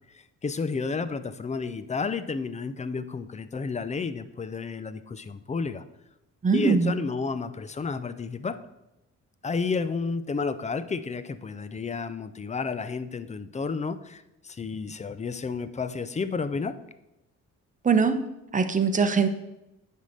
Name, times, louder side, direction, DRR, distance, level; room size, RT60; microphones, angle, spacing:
voice 1, 0.1-5.8 6.5-8.6 9.4-16.8, left 4 dB, 25° left, 12 dB, 0.5 m, -31 dB
voice 2, 6.4-6.9 17.8-18.2 18.5-19.3, right 5 dB, 25° right, 8 dB, 0.9 m, -21 dB
9.6 x 3.7 x 6.4 m, 0.91 s
cardioid pair, 90°, 30 cm